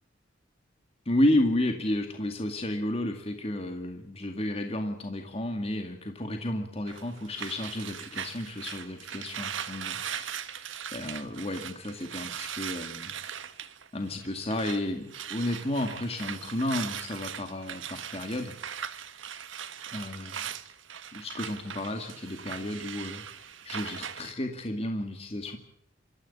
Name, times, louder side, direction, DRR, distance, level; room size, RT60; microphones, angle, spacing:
voice 1, 1.1-10.5 10.9-13.1 13.9-18.5 19.9-20.4 21.1-23.2 23.6-25.6, left 1 dB, 30° left, 5 dB, 2.1 m, -32 dB
sound 1, 6.9-14.8 15.1-24.3, right 8 dB, 80° right, 1.5 m, -39 dB
25.5 x 14.5 x 9.7 m, 0.71 s
head